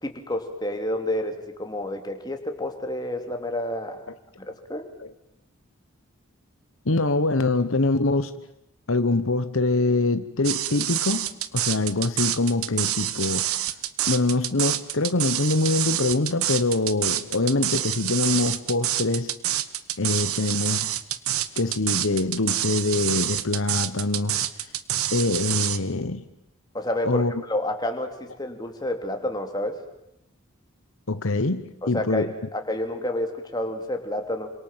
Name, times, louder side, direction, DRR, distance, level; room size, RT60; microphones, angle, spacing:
voice 1, 0.0-4.0 4.4-4.9 26.7-29.8 31.8-34.5, left 1 dB, 20° left, 3.0 m, -29 dB
voice 2, 6.8-8.3 8.9-13.5 14.1-19.3 20.0-20.9 21.5-24.4 25.1-26.2 27.0-27.4 31.1-32.3, left 2 dB, 65° left, 1.1 m, -24 dB
sound 1, 10.4-25.8, right 12 dB, 80° right, 1.4 m, -27 dB
28.0 x 26.0 x 7.5 m
head